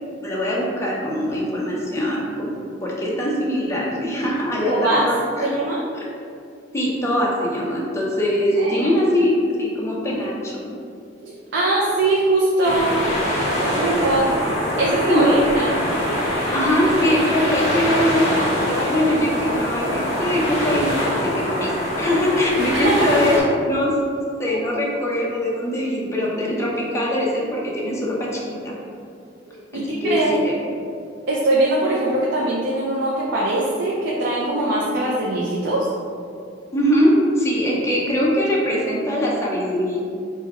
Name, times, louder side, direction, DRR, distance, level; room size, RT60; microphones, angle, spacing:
voice 1, 0.0-2.5 2.8-5.5 6.7-10.6 15.0-15.4 16.5-20.9 21.2-23.9 24.4-28.7 29.7-30.6 36.7-40.0, left 1 dB, 15° left, -5 dB, 0.7 m, -22 dB
voice 2, 4.7-5.0 5.4-5.8 8.6-8.9 11.2-12.9 13.6-14.3 14.8-15.7 22.7-23.1 24.4-24.6 29.5-30.3 31.3-35.9, right 2 dB, 65° right, -5 dB, 0.5 m, -21 dB
sound 1, 12.6-23.4, equal, 35° left, 1.2 m, -23 dB
4.5 x 2.3 x 4.2 m, 2.4 s
head